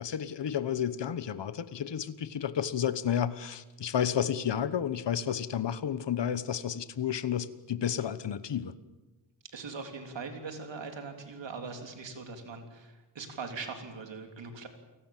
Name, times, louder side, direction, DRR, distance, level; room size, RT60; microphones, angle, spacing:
voice 1, 0.0-8.7, left 9 dB, 70° left, 14 dB, 1.2 m, -31 dB
voice 2, 9.5-14.7, right 4 dB, 75° right, 4 dB, 3.6 m, -41 dB
29.0 x 18.5 x 7.5 m, 1.1 s
wide cardioid pair, 140°, 44 cm